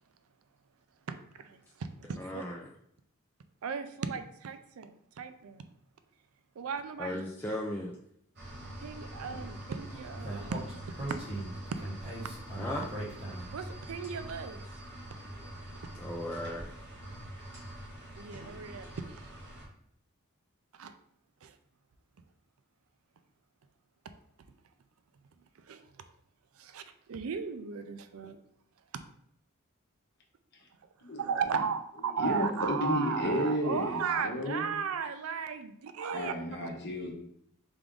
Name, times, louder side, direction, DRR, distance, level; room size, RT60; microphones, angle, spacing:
voice 1, 1.4-2.4 3.6-5.7 6.6-7.2 8.8-10.6 13.5-14.6 18.2-19.2 20.7-20.9 21.4-21.5 25.7-25.8 26.6-26.8 27.1-28.4 31.2-36.3, right 6 dB, 70° right, 9 dB, 0.4 m, -35 dB
voice 2, 2.2-2.6 7.0-7.9 12.6-12.9 16.0-16.7, left 1 dB, 10° left, -3 dB, 0.3 m, -36 dB
sound 1, 8.4-19.7, right 1 dB, 50° right, 1.1 m, -44 dB
Speech, 10.2-13.6, right 2 dB, 25° right, 1.2 m, -39 dB
voice 3, 32.2-34.7 36.1-37.1, equal, 50° left, 0 dB, 1.0 m, -32 dB
3.6 x 3.5 x 3.7 m, 0.69 s
head